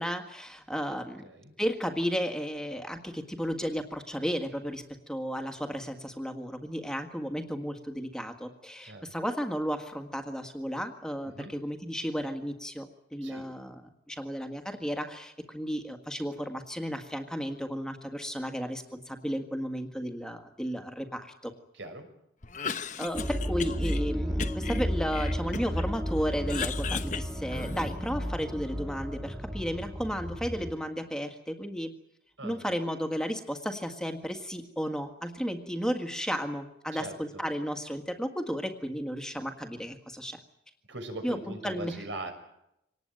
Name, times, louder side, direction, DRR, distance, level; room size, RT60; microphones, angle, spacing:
voice 1, 0.0-1.2 1.6-13.8 14.1-21.5 23.0-31.9 32.4-40.4 41.2-41.4 41.6-41.9, equal, 5° left, 5 dB, 1.8 m, -33 dB
voice 2, 1.2-1.5 8.8-9.1 11.3-11.5 13.2-13.5 21.7-22.1 32.4-32.6 36.9-37.4 40.9-42.3, right 2 dB, 85° right, 5 dB, 6.1 m, -40 dB
Cough, 22.4-24.0 24.4-25.9 26.2-28.1, left 5 dB, 40° left, 1.1 m, -36 dB
sound 1, 23.1-30.7, equal, 10° right, 1.6 m, -33 dB
25.5 x 19.0 x 9.2 m, 0.80 s
head